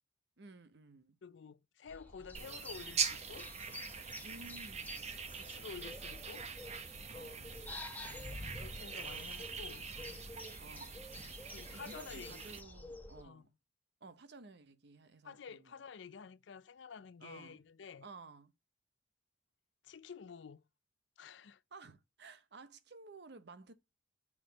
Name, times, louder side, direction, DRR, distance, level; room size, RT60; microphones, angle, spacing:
voice 1, 0.4-1.2 4.2-5.1 7.1-7.6 9.1-9.6 10.6-11.1 11.7-13.5 14.0-15.9 17.2-17.6 18.0-18.5 21.7-23.7, right 3 dB, 60° right, 0.9 m, -55 dB
voice 2, 1.2-3.5 5.4-6.5 8.1-10.2 11.5-12.4 13.2-13.4 15.2-18.1 19.8-20.6 21.2-21.6, left 6 dB, 70° left, 0.5 m, -51 dB
sound 1, 1.9-13.2, left 2 dB, 10° left, 0.9 m, -50 dB
sound 2, 2.3-12.6, right 6 dB, 35° right, 1.0 m, -43 dB
6.0 x 4.7 x 5.1 m
head